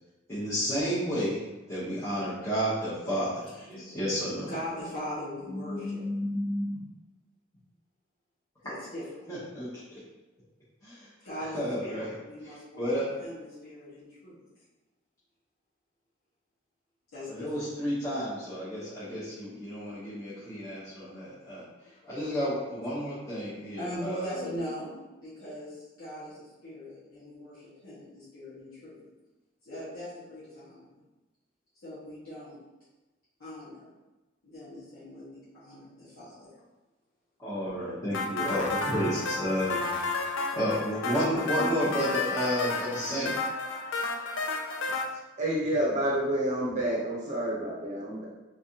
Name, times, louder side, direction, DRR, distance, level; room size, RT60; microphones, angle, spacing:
voice 1, 0.3-1.4 1.7-3.4 3.9-4.5 5.5-6.8 9.3-10.0 10.8-11.1 11.5-12.0 12.5-13.1 17.3-21.6 22.1-24.3 37.4-39.8 40.5-43.3, equal, 15° left, -13 dB, 0.9 m, -31 dB
voice 2, 3.5-6.0 8.6-9.7 11.2-14.4 17.1-17.7 18.0-18.1 22.0-22.2 23.2-29.1 29.6-31.0 31.8-32.6 33.4-33.9 34.4-36.5, equal, 90° left, -13 dB, 1.5 m, -41 dB
sound 1, 38.1-45.1, left 3 dB, 70° left, 0.4 m, -32 dB
voice 3, 45.4-48.3, right 1 dB, 35° right, -4 dB, 0.7 m, -29 dB
3.5 x 3.2 x 2.8 m, 1.1 s
head